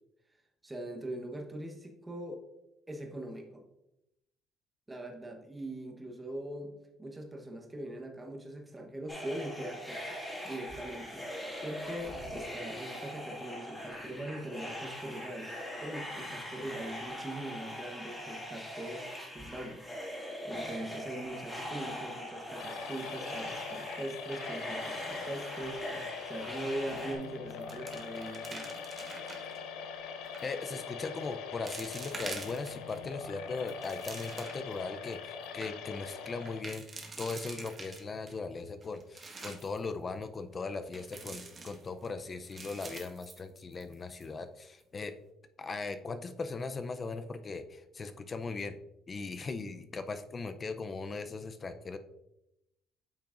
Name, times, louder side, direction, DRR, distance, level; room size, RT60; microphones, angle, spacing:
voice 1, 0.6-2.5 2.9-3.6 4.9-10.2 10.4-15.5 15.8-19.0 19.3-28.7, right 1 dB, 15° right, 2 dB, 1.1 m, -41 dB
sound 1, 9.1-27.2, equal, 10° left, 2.3 m, -41 dB
sound 2, 22.6-36.6, left 6 dB, 85° left, 0.7 m, -43 dB
sound 3, 26.9-27.2 27.5-29.6 30.2-30.6 31.2-31.3 31.7-33.0 33.4-34.7 35.1-35.2 35.4-35.7 36.4-38.3 38.8-39.8 40.9-42.1 42.4-43.9 44.2-44.3 44.8-45.1, right 3 dB, 30° right, 1.3 m, -46 dB
voice 2, 30.4-36.9 37.2-45.1 45.6-48.8 49.1-52.0, left 4 dB, 30° left, 9 dB, 0.5 m, -39 dB
8.6 x 5.7 x 2.5 m, 0.87 s
cardioid pair, 115°, 0 cm